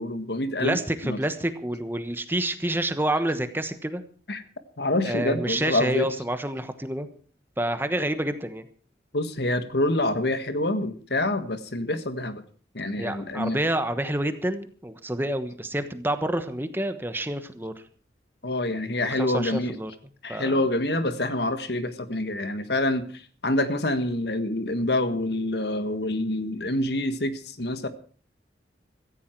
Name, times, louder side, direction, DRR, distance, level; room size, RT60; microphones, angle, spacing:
voice 1, 0.0-1.2 4.3-4.4 4.8-6.1 9.1-12.4 12.7-13.6 18.4-19.8 20.2-27.9, left 1 dB, 65° left, 10 dB, 1.6 m, -26 dB
voice 2, 0.6-4.0 5.0-7.1 7.6-8.7 13.0-17.7 19.1-19.9 20.3-20.6, right 1 dB, 10° right, 9 dB, 1.1 m, -28 dB
17.0 x 14.5 x 4.6 m, 0.42 s
head